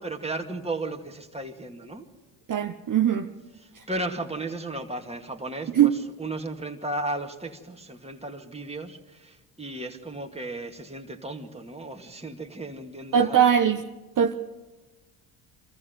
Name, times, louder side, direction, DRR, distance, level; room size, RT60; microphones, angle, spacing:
voice 1, 0.0-2.1 3.6-13.4, right 2 dB, 10° right, 4 dB, 2.2 m, -35 dB
voice 2, 2.5-3.3 3.7-3.8 5.7-6.0 13.1-13.8 14.2-14.3, right 9 dB, 40° right, 5 dB, 1.0 m, -21 dB
24.5 x 14.5 x 8.0 m, 1.2 s
supercardioid pair, 65°, 49 cm